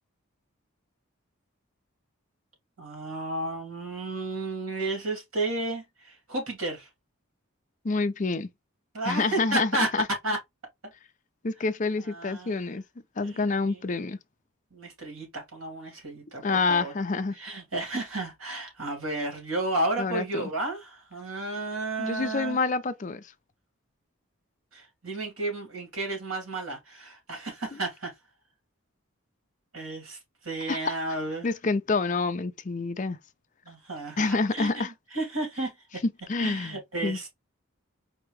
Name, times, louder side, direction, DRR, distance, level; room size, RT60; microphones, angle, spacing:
voice 1, 2.8-6.9 8.9-9.9 10.2-10.4 12.0-12.6 13.2-13.8 14.7-16.9 17.3-22.6 24.7-28.1 29.7-31.5 33.6-35.8 36.4-37.3, right 2 dB, 80° right, 2.6 m, -32 dB
voice 2, 7.8-8.5 9.1-10.0 11.4-12.8 13.2-14.2 16.4-17.3 20.0-20.5 22.0-23.3 30.7-30.9 31.4-33.2 34.2-34.9 36.3-37.2, left 3 dB, 35° left, 0.5 m, -27 dB
4.6 x 3.0 x 3.2 m
head